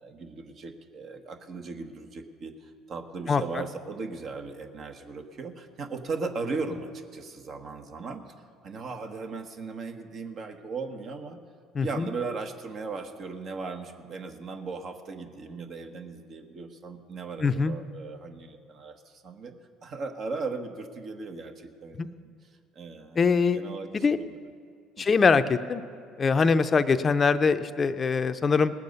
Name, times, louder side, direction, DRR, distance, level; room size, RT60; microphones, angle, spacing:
voice 1, 0.0-8.2 8.6-11.4 11.8-19.6 19.8-22.3 22.7-24.4 25.0-25.1, right 4 dB, 55° right, 5 dB, 1.2 m, -37 dB
voice 2, 11.8-12.1 17.4-17.7 22.0-22.1 23.2-23.6 23.9-24.2 25.0-25.8 26.2-28.7, left 5 dB, 35° left, 11 dB, 0.6 m, -23 dB
18.5 x 7.3 x 5.4 m, 2.3 s
supercardioid pair, 75°, 0 cm